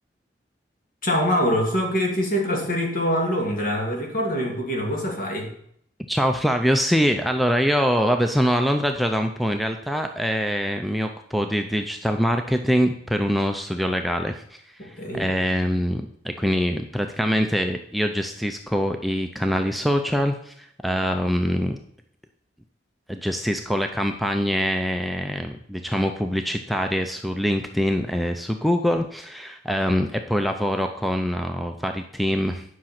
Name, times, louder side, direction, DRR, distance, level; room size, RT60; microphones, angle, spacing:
voice 1, 1.0-5.5 14.8-15.3, equal, 50° left, 1 dB, 2.6 m, -24 dB
voice 2, 6.1-14.4 14.8-21.8 23.1-32.6, equal, ahead, 4 dB, 0.5 m, -24 dB
10.5 x 6.0 x 5.8 m, 0.69 s
head